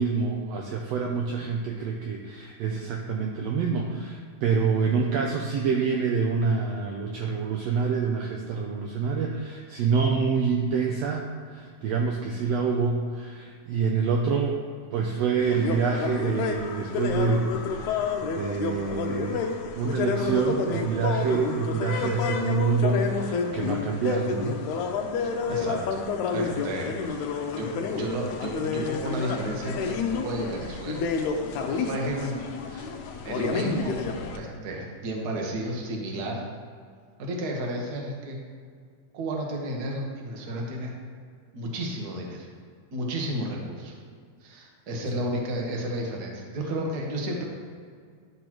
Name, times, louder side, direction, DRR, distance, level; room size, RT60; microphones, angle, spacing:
voice 1, 0.0-14.6 14.9-18.0 18.3-19.5 19.8-24.6 45.1-45.2, right 5 dB, 80° right, 1 dB, 1.5 m, -27 dB
sound 1, 15.4-34.4, left 5 dB, 80° left, 2.1 m, -30 dB
voice 2, 25.2-25.8 26.3-26.9 27.5-31.0 31.7-32.4 32.6-32.9 33.2-34.0 34.3-36.4 37.2-38.4 39.1-40.9 41.5-42.5 42.9-43.9 44.4-47.4, right 1 dB, 50° right, -1 dB, 1.2 m, -32 dB
12.5 x 6.7 x 3.0 m, 2.1 s
omnidirectional pair, 3.5 m